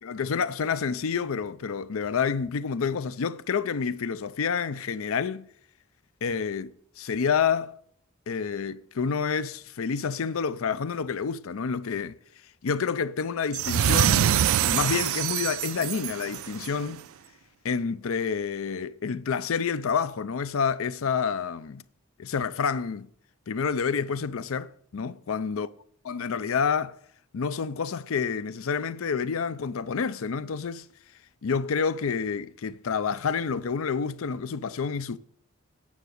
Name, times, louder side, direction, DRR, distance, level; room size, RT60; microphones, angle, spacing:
voice 1, 0.0-5.5 6.2-7.8 8.3-12.2 12.6-17.0 17.6-21.8 22.2-23.1 23.5-25.7 26.1-27.0 27.3-30.9 31.4-35.2, left 6 dB, 70° left, 0.5 m, -28 dB
sound 1, 13.5-16.8, right 10 dB, 70° right, 0.4 m, -25 dB
9.4 x 7.1 x 6.5 m
head